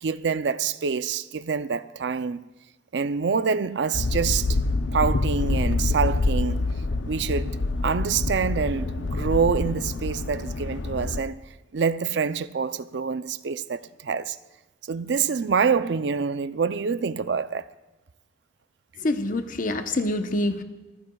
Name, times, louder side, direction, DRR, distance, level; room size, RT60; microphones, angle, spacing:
voice 1, 0.0-2.4 2.9-4.6 4.9-6.6 7.0-7.6 7.8-11.4 11.7-14.4 14.9-17.7, right 5 dB, 70° right, 0.5 m, -26 dB
sound 1, 3.9-11.2, left 3 dB, 90° left, 0.6 m, -26 dB
voice 2, 19.0-20.6, left 2 dB, 50° left, 0.9 m, -26 dB
24.0 x 15.0 x 2.3 m
head